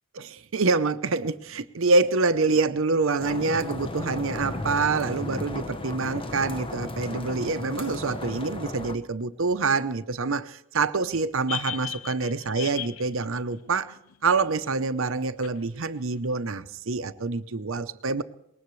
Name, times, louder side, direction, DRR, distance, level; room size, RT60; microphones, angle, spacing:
voice 1, 0.1-13.9 14.2-18.2, right 3 dB, 60° right, 11 dB, 0.7 m, -26 dB
sound 1, 3.2-9.0, left 2 dB, 25° left, 0.9 m, -35 dB
sound 2, 11.5-14.5 15.4-15.5, left 11 dB, 70° left, 0.5 m, -37 dB
23.0 x 19.5 x 3.2 m, 0.80 s
head